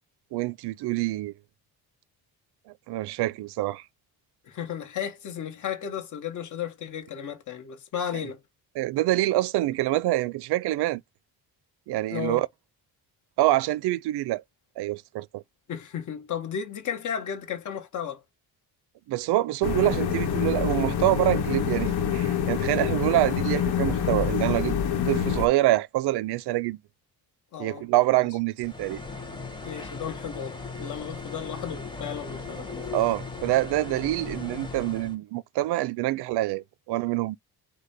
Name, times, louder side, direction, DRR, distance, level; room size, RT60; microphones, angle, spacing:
voice 1, 0.3-1.3 2.9-3.9 8.8-11.0 11.9-12.5 13.4-14.4 14.8-15.4 19.1-24.8 25.1-26.8 27.6-29.0 32.9-37.4, right 16 dB, 85° right, 0.5 m, -26 dB
voice 2, 4.4-8.4 12.1-12.4 15.7-18.2 27.5-27.8 29.6-32.7, left 8 dB, 50° left, 1.2 m, -34 dB
sound 1, 19.6-25.5, left 8 dB, 70° left, 1.2 m, -26 dB
sound 2, 28.6-35.1, left 4 dB, 10° left, 1.2 m, -38 dB
5.2 x 2.2 x 3.9 m
cardioid pair, 170°, 39 cm